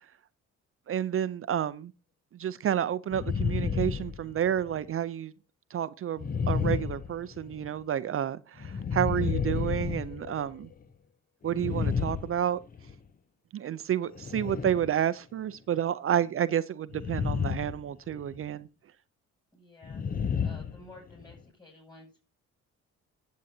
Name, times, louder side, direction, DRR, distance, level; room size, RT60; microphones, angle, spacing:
voice 1, 0.9-1.9 2.4-5.3 5.7-10.7 11.4-12.6 13.5-18.7, right 10 dB, 45° right, 0.5 m, -30 dB
sound 1, 3.1-4.7 6.2-7.7 8.6-10.7 11.4-13.0 14.1-14.9 16.9-17.8 18.1-18.4 19.8-21.4, left 6 dB, 30° left, 0.6 m, -31 dB
voice 2, 19.5-20.1 20.4-22.2, left 2 dB, 15° left, 6.1 m, -52 dB
14.5 x 8.4 x 2.7 m
cardioid pair, 90°, 30 cm